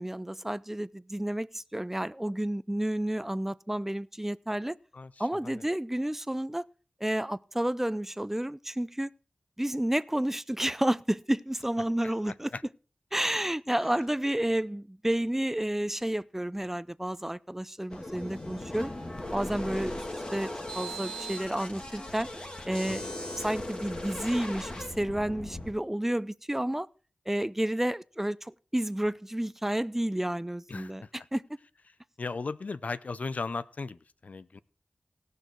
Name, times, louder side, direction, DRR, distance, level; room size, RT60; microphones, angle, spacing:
voice 1, 0.0-4.8 5.2-6.7 7.0-9.1 9.6-12.5 13.1-18.9 19.3-20.1 20.3-20.5 20.7-22.3 22.7-24.7 25.0-26.9 27.3-31.0 31.3-31.4, right 1 dB, 10° right, 0.5 m, -30 dB
voice 2, 4.9-5.6 12.0-12.6 22.9-23.1 30.7-31.1 32.2-34.6, left 4 dB, 65° left, 0.7 m, -37 dB
sound 1, 17.9-25.7, left 1 dB, 35° left, 2.4 m, -38 dB
17.5 x 6.6 x 4.5 m
wide cardioid pair, 50°, 3 cm